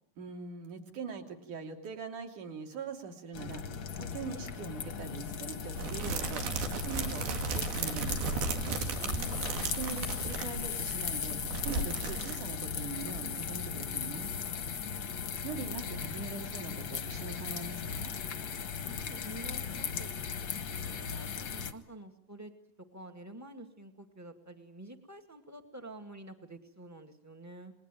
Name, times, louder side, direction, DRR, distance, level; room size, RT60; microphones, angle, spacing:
voice 1, 0.2-3.6 4.0-6.4 6.7-8.3 9.7-11.4 11.6-14.3 15.4-18.1, right 5 dB, 55° right, 4 dB, 4.3 m, -42 dB
sound 1, 3.3-21.7, left 7 dB, 60° left, 1.3 m, -37 dB
sound 2, 5.7-12.8 13.1-13.2 13.4-13.6, right 4 dB, 80° right, 3.9 m, -35 dB
voice 2, 9.0-9.5 14.9-15.1 18.8-20.1 20.7-22.5 22.9-27.7, right 1 dB, 15° right, 6 dB, 0.6 m, -49 dB
29.0 x 21.5 x 9.1 m, 0.69 s
omnidirectional pair, 4.3 m